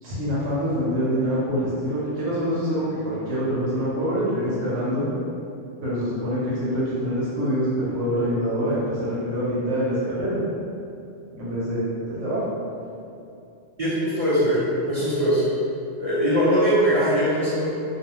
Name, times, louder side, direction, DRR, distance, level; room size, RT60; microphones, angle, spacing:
voice 1, 0.0-5.1 5.8-10.4 11.3-12.5, equal, 90° right, -9 dB, 1.0 m, -25 dB
voice 2, 13.8-15.4 16.0-17.6, equal, 55° right, -11 dB, 0.4 m, -21 dB
2.3 x 2.3 x 2.9 m, 2.6 s
omnidirectional pair, 1.3 m